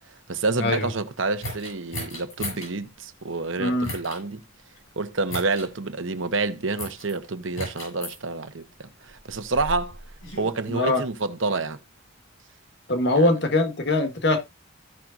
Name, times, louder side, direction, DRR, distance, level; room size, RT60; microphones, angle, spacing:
voice 1, 0.3-4.4 5.0-10.0 10.4-11.8 13.1-13.3, right 3 dB, 70° right, 1.0 m, -28 dB
sound 1, 1.4-2.7 3.8-4.2 5.3-5.7 6.8-7.1 7.5-8.2 9.1-10.5, left 1 dB, 85° left, 7.3 m, -35 dB
voice 2, 3.6-3.9 10.7-11.0 12.9-14.4, left 2 dB, 60° left, 1.5 m, -22 dB
15.0 x 6.0 x 2.5 m
head